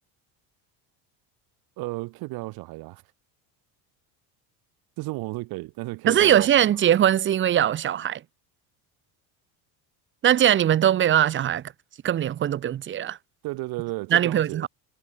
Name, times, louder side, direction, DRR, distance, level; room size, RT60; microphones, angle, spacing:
voice 1, 1.8-3.0 5.0-6.5 13.4-14.7, right 22 dB, 60° right, 1.6 m, -33 dB
voice 2, 6.1-8.2 10.2-11.6 12.0-13.2 14.1-14.7, right 10 dB, 30° right, 1.0 m, -21 dB
cardioid pair, 155°, 41 cm